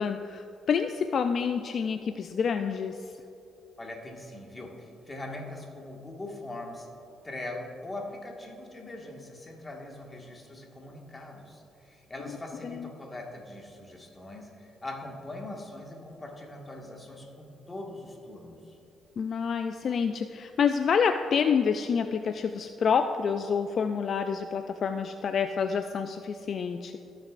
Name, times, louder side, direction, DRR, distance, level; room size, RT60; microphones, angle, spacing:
voice 1, 0.0-3.0 12.6-12.9 19.2-27.0, left 6 dB, 55° left, 7 dB, 0.3 m, -28 dB
voice 2, 3.8-6.9 7.2-18.8, left 2 dB, 20° left, 0 dB, 1.7 m, -41 dB
17.0 x 6.6 x 2.5 m, 2.8 s
cardioid pair, 90°, 0 cm